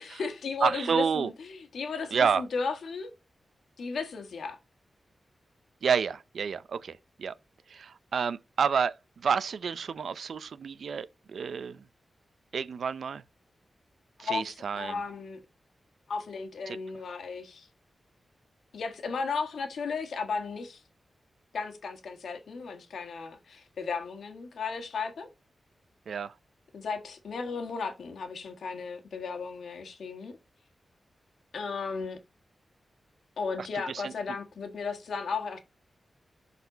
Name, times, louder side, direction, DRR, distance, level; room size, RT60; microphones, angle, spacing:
voice 1, 0.0-3.1 3.8-4.6 14.2-14.4 14.8-15.4 16.1-17.7 18.7-20.8 21.5-25.3 26.7-30.3 31.5-32.2 33.4-35.6, left 5 dB, 85° left, 1.6 m, -35 dB
voice 2, 0.6-1.3 2.1-2.4 5.8-7.3 7.7-11.8 12.5-13.2 14.2-15.0 16.7-16.8 26.1-26.3 33.6-34.1, right 6 dB, 75° right, 0.5 m, -29 dB
11.5 x 4.2 x 4.0 m
wide cardioid pair, 125°, 0 cm